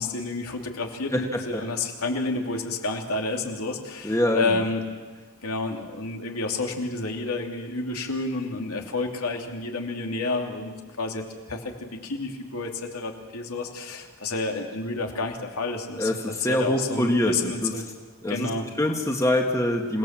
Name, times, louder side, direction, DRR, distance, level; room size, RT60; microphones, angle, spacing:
voice 1, 0.0-4.8 5.4-16.1 16.4-17.8 18.3-18.7, left 3 dB, 80° left, 2 dB, 2.9 m, -30 dB
voice 2, 4.0-4.6 16.0-17.7 18.2-18.5 18.8-20.0, left 1 dB, 15° left, 1 dB, 1.8 m, -24 dB
28.0 x 18.0 x 7.6 m, 1.4 s
head